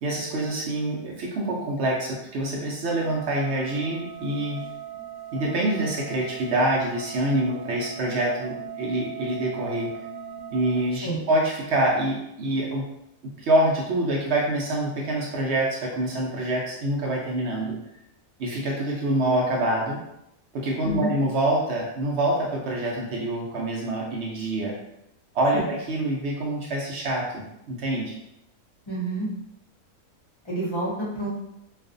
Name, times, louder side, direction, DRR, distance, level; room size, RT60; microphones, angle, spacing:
voice 1, 0.0-4.6 5.3-9.9 10.5-12.9 13.2-17.8 18.4-20.0 20.5-24.7 25.3-28.2, right 1 dB, 65° right, -2 dB, 0.7 m, -26 dB
sound 1, 2.9-10.9, right 9 dB, 85° right, 1.2 m, -39 dB
voice 2, 28.9-29.3 30.4-31.3, right 1 dB, 35° left, -9 dB, 0.4 m, -29 dB
2.4 x 2.4 x 2.4 m, 0.82 s
omnidirectional pair, 1.5 m